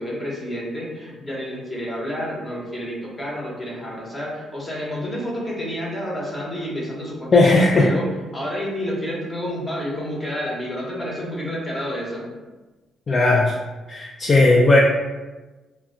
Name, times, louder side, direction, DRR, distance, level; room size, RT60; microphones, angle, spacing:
voice 1, 0.0-8.1 8.3-12.3, equal, 20° left, -4 dB, 1.0 m, -29 dB
voice 2, 7.3-7.9 13.1-13.5 13.9-14.8, left 2 dB, 40° left, -3 dB, 0.4 m, -16 dB
2.2 x 2.1 x 3.7 m, 1.2 s
cardioid pair, 90°, 0 cm